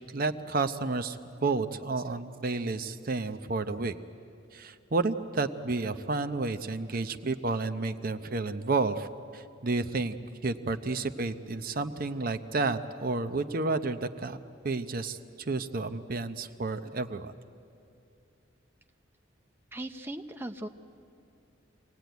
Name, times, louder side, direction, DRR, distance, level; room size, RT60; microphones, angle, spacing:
voice 1, 0.1-3.9 4.5-9.1 9.3-10.2 10.4-14.4 14.6-17.3, right 3 dB, 50° right, 10 dB, 0.8 m, -31 dB
voice 2, 19.7-20.7, right 1 dB, 10° right, 5 dB, 0.7 m, -38 dB
25.0 x 18.5 x 9.3 m, 2.6 s
head